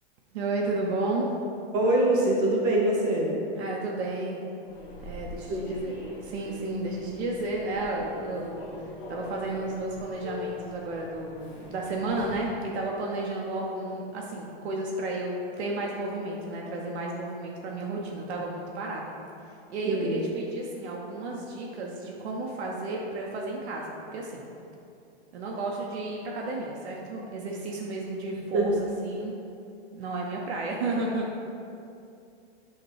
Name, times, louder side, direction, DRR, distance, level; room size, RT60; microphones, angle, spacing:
voice 1, 0.3-1.3 3.6-4.5 5.0-6.0 6.2-8.7 9.1-19.1 19.5-24.4 25.3-29.3 29.9-31.3, right 2 dB, 80° right, -2 dB, 0.7 m, -32 dB
voice 2, 1.7-3.3 5.5-5.7 19.9-20.2 28.5-28.7, right 1 dB, 20° right, -3 dB, 0.4 m, -24 dB
Human voice / Subway metro underground, 4.6-12.6, left 3 dB, 55° left, 1.0 m, -43 dB
6.3 x 2.2 x 3.1 m, 2.5 s
supercardioid pair, 155°, 33 cm